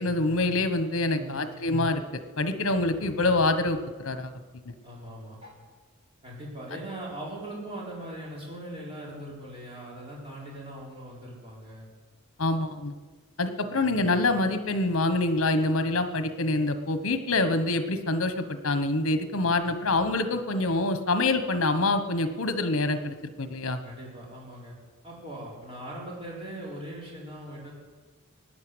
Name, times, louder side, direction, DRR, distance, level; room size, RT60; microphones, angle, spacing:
voice 1, 0.0-4.3 4.6-4.7 12.4-12.9 13.4-23.8, left 2 dB, 70° left, 10 dB, 1.2 m, -26 dB
voice 2, 1.0-1.6 4.8-5.5 6.2-11.9 13.6-14.0 23.8-24.8 25.0-27.7, right 1 dB, 25° right, -5 dB, 4.2 m, -40 dB
17.5 x 10.0 x 8.0 m, 1.4 s
head